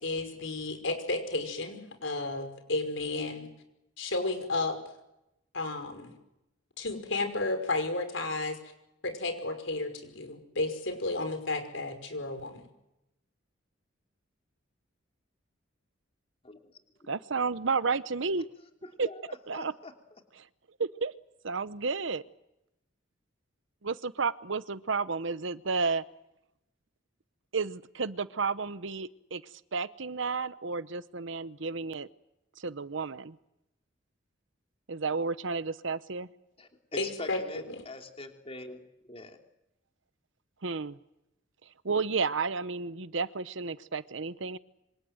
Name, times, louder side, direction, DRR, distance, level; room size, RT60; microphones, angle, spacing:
voice 1, 0.0-3.5 4.0-4.8 5.5-6.1 6.8-8.6 9.0-12.7 37.0-37.4 37.7-37.8, left 2 dB, 70° left, 7 dB, 5.4 m, -32 dB
voice 2, 17.1-18.5 19.0-19.1 19.5-19.7 20.8-21.1 21.4-22.2 23.8-26.0 27.5-29.4 29.7-32.1 32.6-33.4 34.9-36.3 40.6-41.0 41.8-44.6, right 4 dB, 70° right, 15 dB, 0.9 m, -31 dB
voice 3, 18.8-19.9 36.6-38.8 39.0-39.4, left 2 dB, 30° left, 4 dB, 3.2 m, -43 dB
26.5 x 26.0 x 7.9 m, 0.88 s
head